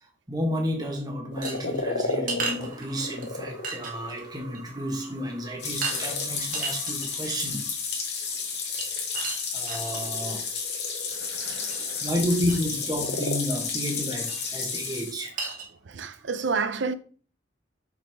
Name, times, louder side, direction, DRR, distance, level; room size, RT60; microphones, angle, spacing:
voice 1, 0.3-7.7 9.5-10.4 12.0-15.4, equal, 20° right, 1.4 m, -31 dB
sound 1, 1.3-4.6 5.2-6.3 8.3-13.4, left 2 dB, 75° left, 1.0 m, -35 dB
sound 2, 1.4-3.3 3.6-4.2 4.5-4.7 5.0-5.3 5.8-6.0 6.4-7.5 8.8-10.1 11.7-11.8 12.2-12.3 12.5-12.6 14.3-14.5 14.9-15.0 15.4-15.7, right 4 dB, 45° right, 1.6 m, -34 dB
sound 3, 5.6-15.1, left 5 dB, 60° left, 2.1 m, -32 dB
voice 2, 11.2-12.0 15.9-16.9, right 4 dB, 70° right, 0.6 m, -30 dB
6.3 x 6.1 x 3.6 m
head